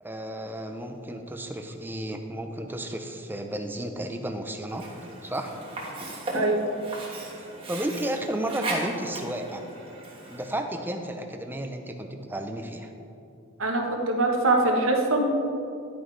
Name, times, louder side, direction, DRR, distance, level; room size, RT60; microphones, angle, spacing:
voice 1, 0.0-4.8 5.2-5.5 7.7-9.6 10.3-12.9, right 1 dB, 10° right, 5 dB, 0.6 m, -33 dB
Sink (filling or washing), 4.7-10.6, right 2 dB, 25° right, 1.5 m, -36 dB
voice 2, 6.3-6.6 13.6-15.2, right 2 dB, 65° right, 2 dB, 1.1 m, -23 dB
10.5 x 9.4 x 3.3 m, 2.7 s
head